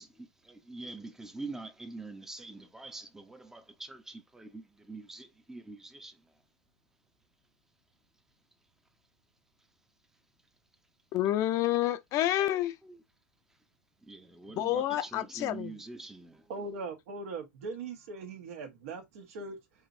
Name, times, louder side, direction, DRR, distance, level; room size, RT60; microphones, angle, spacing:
voice 1, 0.0-6.3 12.8-13.0 14.0-16.5, right 3 dB, 5° right, 0.7 m, -45 dB
voice 2, 11.1-12.8 14.5-15.7, left 13 dB, 45° left, 0.6 m, -29 dB
voice 3, 16.5-19.6, right 3 dB, 70° right, 1.3 m, -40 dB
4.8 x 3.0 x 2.6 m
hypercardioid pair, 110°, 8 cm